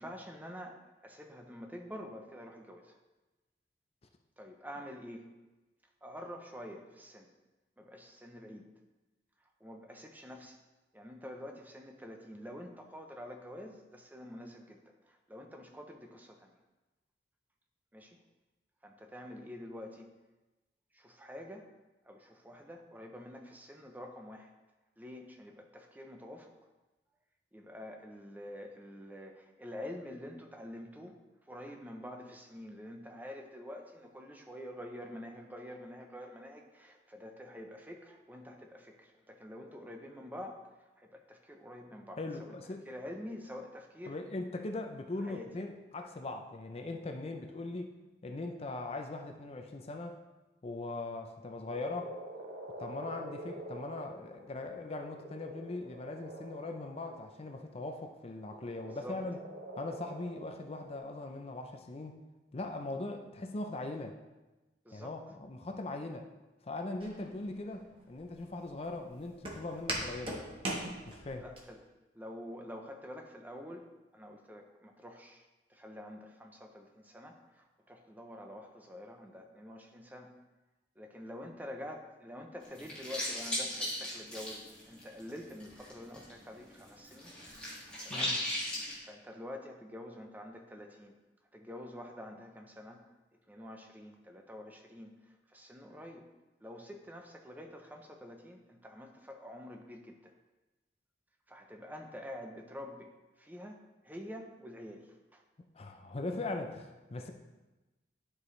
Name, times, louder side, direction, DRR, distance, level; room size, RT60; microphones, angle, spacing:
voice 1, 0.0-3.0 4.4-5.3 6.0-7.3 7.8-8.7 9.6-10.6 10.9-16.5 17.9-18.2 18.8-20.1 20.9-21.7 22.1-24.5 25.0-26.5 27.5-31.2 31.5-40.6 41.0-42.5 42.9-44.2 45.3-45.5 58.9-59.2 64.8-65.1 71.4-71.8 72.1-73.9 74.1-80.3 81.0-87.4 88.0-88.7 89.0-91.1 91.5-93.0 93.5-95.1 95.5-96.2 96.6-100.3 101.5-103.1 103.4-103.8 104.0-105.4, left 1 dB, 10° right, 3 dB, 0.6 m, -47 dB
voice 2, 42.2-42.9 44.1-47.9 48.2-50.2 50.6-52.1 52.8-59.4 59.8-62.2 62.5-64.2 64.9-66.3 66.6-70.4 71.1-71.5 88.1-88.4 105.7-107.3, left 2 dB, 35° left, 5 dB, 0.5 m, -40 dB
Frog, 51.7-57.6 58.4-61.0, right 1 dB, 55° right, 0.9 m, -47 dB
Walk footsteps, 67.0-71.6, right 1 dB, 30° right, 1.2 m, -40 dB
sound 1, 82.6-86.3 86.6-89.0, left 1 dB, 5° left, 1.9 m, -37 dB
11.0 x 4.8 x 3.2 m, 1.1 s
head